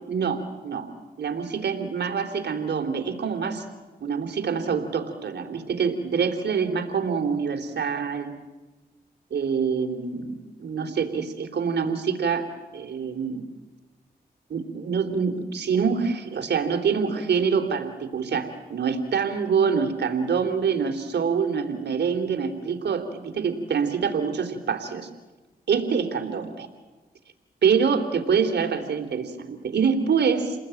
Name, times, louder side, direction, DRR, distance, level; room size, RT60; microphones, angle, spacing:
voice 1, 0.1-0.9 1.2-3.6 4.0-8.3 9.3-12.5 12.7-13.4 14.5-25.1 25.7-26.7 27.6-30.6, right 6 dB, 75° right, 8 dB, 3.3 m, -25 dB
29.5 x 20.0 x 9.1 m, 1.2 s
cardioid pair, 45°, 18 cm